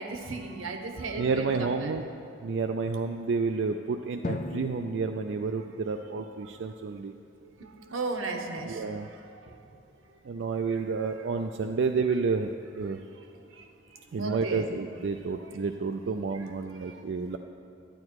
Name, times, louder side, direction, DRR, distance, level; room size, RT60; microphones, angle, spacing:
voice 1, 0.0-1.9 7.9-8.8 14.2-14.7 15.3-15.4, right 3 dB, 90° right, 4 dB, 1.1 m, -35 dB
voice 2, 1.2-2.0 2.4-7.1 8.7-9.1 10.2-13.0 14.1-17.4, right 4 dB, 60° right, 5 dB, 0.4 m, -30 dB
Drum, 4.2-6.7, left 3 dB, 35° left, 0.4 m, -39 dB
11.5 x 9.6 x 4.7 m, 2.6 s
head